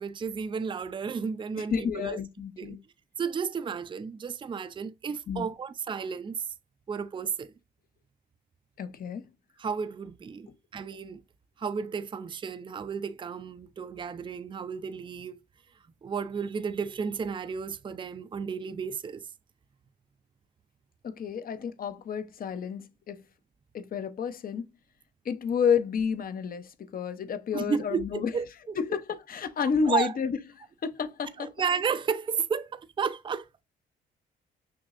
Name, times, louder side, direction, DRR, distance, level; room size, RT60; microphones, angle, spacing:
voice 1, 0.0-2.2 2.6-2.8 3.2-6.5 6.9-7.5 9.6-11.2 11.6-15.4 16.0-19.3 27.5-28.0 28.3-28.7 29.9-30.2 31.4-33.6, right 6 dB, 25° right, 0.4 m, -32 dB
voice 2, 1.5-2.8 5.3-5.5 8.8-9.3 21.0-23.2 23.7-24.7 25.2-28.3 28.8-30.4 30.8-31.5, left 6 dB, 45° left, 0.7 m, -30 dB
6.2 x 2.7 x 2.5 m
cardioid pair, 90°, 20 cm